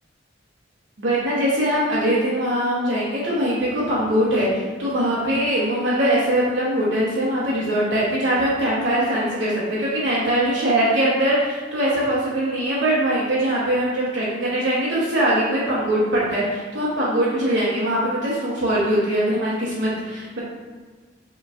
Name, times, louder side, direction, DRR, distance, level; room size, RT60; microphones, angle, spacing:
voice 1, 1.0-20.4, right 1 dB, 80° right, -7 dB, 0.9 m, -22 dB
4.8 x 3.1 x 2.4 m, 1.5 s
head